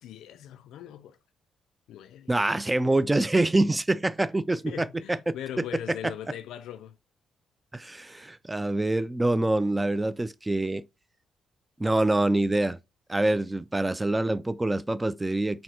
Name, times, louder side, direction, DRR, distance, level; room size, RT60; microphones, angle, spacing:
voice 1, 0.0-1.2 1.9-2.3 4.7-7.0, left 10 dB, 70° left, 0.3 m, -40 dB
voice 2, 2.3-4.9 5.3-5.4 7.7-10.8 11.8-12.8 13.1-15.6, right 2 dB, 20° right, 0.3 m, -25 dB
4.0 x 2.0 x 2.7 m
hypercardioid pair, 45°, 0 cm